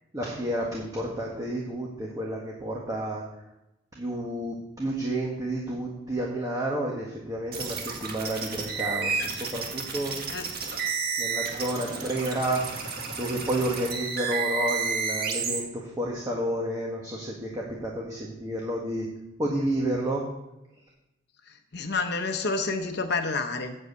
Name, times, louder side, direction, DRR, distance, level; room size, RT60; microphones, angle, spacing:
voice 1, 0.1-3.2 3.9-10.2 11.2-19.1 19.4-20.2, right 1 dB, 20° right, -2 dB, 1.4 m, -30 dB
sound 1, 7.5-15.6, right 5 dB, 50° right, 1.7 m, -31 dB
voice 2, 21.7-23.8, left 3 dB, 60° left, 6 dB, 0.9 m, -28 dB
7.9 x 7.3 x 8.1 m, 0.93 s
head